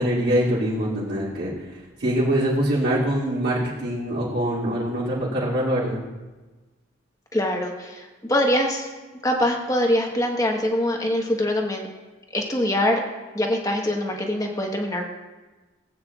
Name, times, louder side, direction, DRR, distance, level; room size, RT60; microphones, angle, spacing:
voice 1, 0.0-1.5 2.0-6.0, right 1 dB, 55° right, -8 dB, 2.6 m, -23 dB
voice 2, 7.3-8.9 9.2-11.9 12.3-13.0 13.3-15.1, left 1 dB, 15° left, 2 dB, 1.1 m, -23 dB
18.0 x 8.8 x 2.4 m, 1.2 s
head